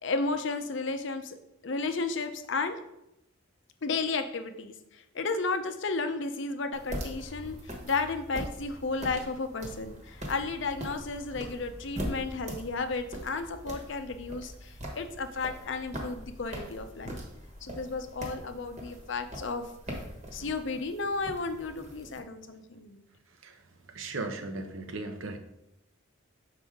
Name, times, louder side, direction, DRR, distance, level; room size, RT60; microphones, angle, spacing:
voice 1, 0.0-1.4 1.6-2.8 3.8-17.2 17.6-20.0 20.3-23.0, left 3 dB, 60° left, 8 dB, 0.6 m, -33 dB
sound 1, 6.7-22.2, equal, 35° right, 1.3 m, -42 dB
voice 2, 23.9-25.4, right 3 dB, 75° right, 6 dB, 0.8 m, -37 dB
7.0 x 4.8 x 3.6 m, 0.84 s
head